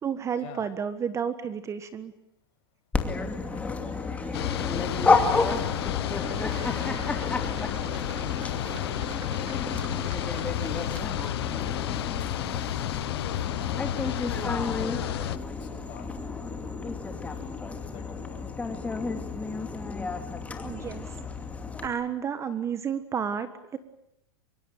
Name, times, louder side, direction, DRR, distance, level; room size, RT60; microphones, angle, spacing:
voice 1, 0.0-2.1 20.6-21.0 21.8-23.8, right 7 dB, 20° right, 12 dB, 1.5 m, -31 dB
Dog, 2.9-21.9, left 4 dB, 10° left, 2.5 m, -31 dB
voice 2, 3.4-3.9 4.9-9.7 10.0-10.5 10.8-12.0 12.7-14.2 14.5-15.3 15.6-16.1 17.1-17.5 17.8-18.5, left 8 dB, 45° left, 4 dB, 7.5 m, -48 dB
sound 1, 3.9-11.6, right 7 dB, 90° right, 3.0 m, -49 dB
sound 2, 4.3-15.4, left 12 dB, 80° left, 1.1 m, -31 dB
24.5 x 23.5 x 9.0 m, 0.83 s
supercardioid pair, 135°, 13 cm